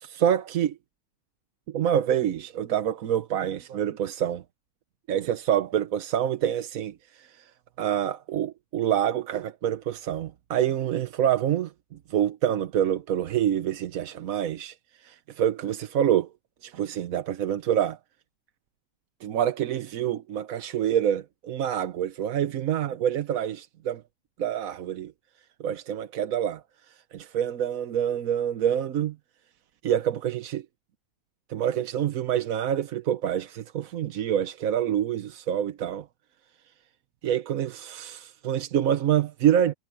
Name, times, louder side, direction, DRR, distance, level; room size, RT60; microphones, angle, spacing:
voice 1, 0.0-0.8 1.7-4.4 5.1-7.5 7.8-11.7 12.1-14.7 15.0-16.3 16.6-18.0 19.2-24.0 24.4-25.1 25.6-26.6 27.1-29.1 29.8-30.6 31.5-36.1 37.2-39.7, right 10 dB, 85° right, 1.3 m, -26 dB
omnidirectional pair, 1.4 m